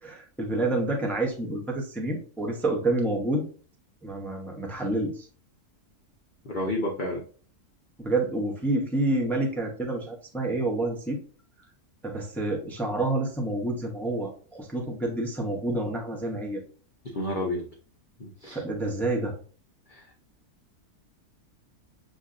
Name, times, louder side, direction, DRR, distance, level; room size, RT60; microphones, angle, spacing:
voice 1, 0.0-3.4 4.0-5.3 8.0-11.2 12.0-16.6 18.5-19.3, right 2 dB, ahead, 0 dB, 0.6 m, -28 dB
voice 2, 6.4-7.2 17.0-17.7 18.2-18.6 19.9-20.1, left 1 dB, 45° left, -1 dB, 0.6 m, -30 dB
7.1 x 2.6 x 2.5 m, 0.40 s
omnidirectional pair, 1.6 m